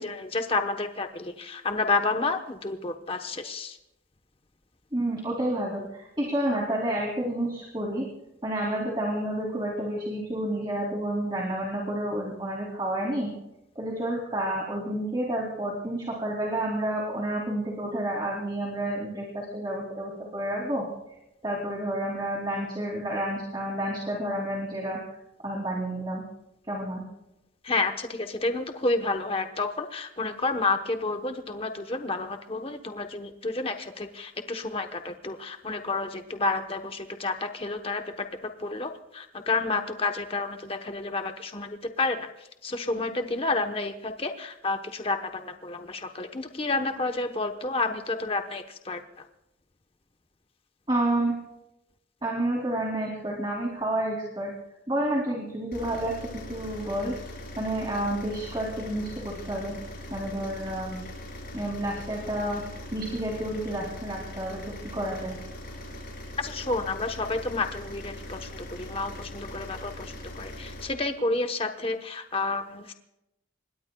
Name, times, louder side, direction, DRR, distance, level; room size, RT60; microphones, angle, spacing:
voice 1, 0.0-3.8 27.6-42.3 42.6-49.0 66.4-72.9, left 3 dB, 30° left, 7 dB, 1.0 m, -30 dB
voice 2, 4.9-8.0 8.4-13.3 13.7-20.8 21.4-25.0 25.4-26.2 26.7-27.0 50.9-51.3 52.2-54.5 54.9-57.1 57.6-59.7 60.1-61.0 61.5-62.6 62.9-65.4, right 1 dB, 25° right, -2 dB, 2.9 m, -30 dB
sound 1, 55.7-70.9, left 1 dB, 50° left, 6.5 m, -41 dB
26.0 x 21.0 x 2.3 m, 0.88 s
head